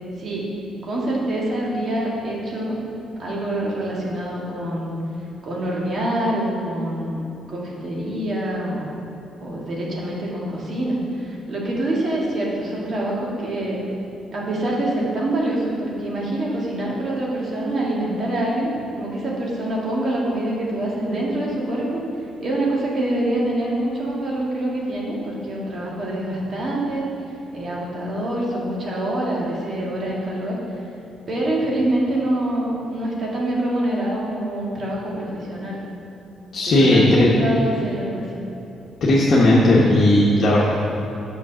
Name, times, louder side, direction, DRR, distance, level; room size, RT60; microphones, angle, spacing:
voice 1, 0.2-0.5 0.8-2.8 3.2-5.0 5.4-8.9 9.4-13.8 14.3-22.0 22.4-27.0 27.5-30.6 31.3-35.8 36.6-38.3, right 1 dB, 50° right, -4 dB, 1.9 m, -25 dB
voice 2, 36.5-37.3 39.0-40.6, left 1 dB, 55° left, -5 dB, 1.1 m, -15 dB
6.2 x 6.0 x 6.2 m, 3.0 s
cardioid pair, 90°, 0 cm